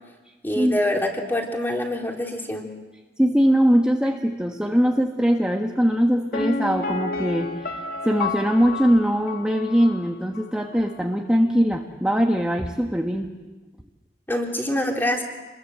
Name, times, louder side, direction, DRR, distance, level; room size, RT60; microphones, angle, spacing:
voice 1, 0.4-2.7 14.3-15.2, left 1 dB, 10° left, 1 dB, 3.7 m, -25 dB
voice 2, 3.2-7.7 8.0-13.3, equal, 5° right, 2 dB, 1.4 m, -21 dB
Piano, 6.3-10.1 10.4-10.5, left 3 dB, 60° left, 2.1 m, -31 dB
28.0 x 21.5 x 7.9 m, 1.2 s
head